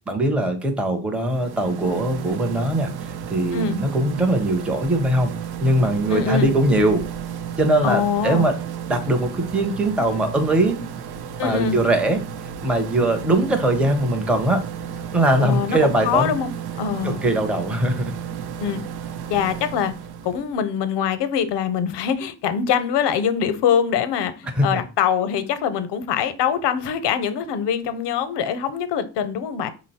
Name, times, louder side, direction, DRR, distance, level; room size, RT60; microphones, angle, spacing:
voice 1, 0.1-5.3 5.6-7.0 7.6-8.6 8.9-10.8 11.4-12.2 12.6-14.6 15.1-16.3 17.0-18.1 24.5-24.8, right 1 dB, 5° right, 0.5 m, -21 dB
sound 1, 1.1-20.5, right 8 dB, 60° right, 0.5 m, -33 dB
voice 2, 6.1-6.5 7.8-8.5 11.4-11.8 15.4-16.5 16.8-17.3 18.6-18.8 19.3-19.9 20.2-29.7, left 7 dB, 70° left, 0.6 m, -23 dB
4.0 x 2.0 x 4.0 m
cardioid pair, 95°, 42 cm